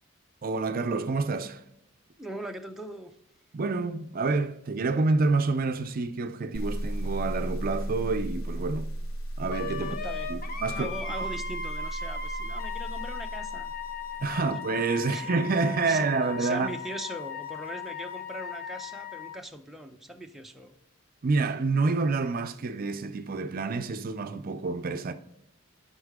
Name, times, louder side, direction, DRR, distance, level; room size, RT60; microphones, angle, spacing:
voice 1, 0.4-1.6 3.5-8.9 9.4-10.0 10.3-10.9 14.2-16.7 21.2-25.1, right 3 dB, 45° right, 0.5 m, -28 dB
voice 2, 2.2-3.1 9.8-10.3 10.7-13.7 14.3-14.5 15.0-15.5 15.9-16.1 16.4-20.8, right 1 dB, ahead, 0.6 m, -40 dB
sound 1, 6.5-14.4, right 1 dB, 85° left, 0.8 m, -35 dB
Wind instrument woodwind instrument, 9.5-19.4, left 5 dB, 45° left, 0.8 m, -37 dB
11.5 x 5.5 x 3.5 m
head